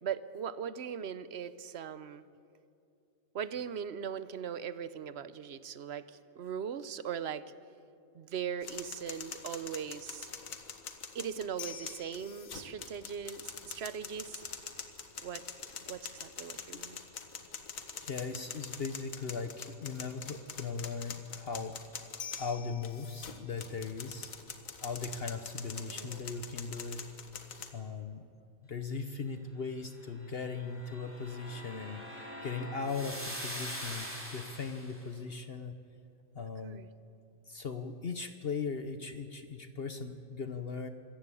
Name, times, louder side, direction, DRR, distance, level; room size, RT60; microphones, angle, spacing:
voice 1, 0.0-2.2 3.3-7.4 8.1-10.3 11.1-14.4 15.2-15.4 15.9-17.0 25.9-26.3 36.6-36.9, right 8 dB, 55° right, 15 dB, 0.9 m, -39 dB
sound 1, 8.6-27.7, left 6 dB, 70° left, 1.7 m, -45 dB
voice 2, 18.0-21.8 22.4-24.3 24.8-27.0 27.7-28.3 28.7-35.8 36.3-36.8 37.5-40.9, left 5 dB, 50° left, 9 dB, 1.0 m, -38 dB
sound 2, 30.3-35.0, equal, 10° right, 3.7 m, -43 dB
25.0 x 14.5 x 8.4 m, 2.5 s
omnidirectional pair, 1.4 m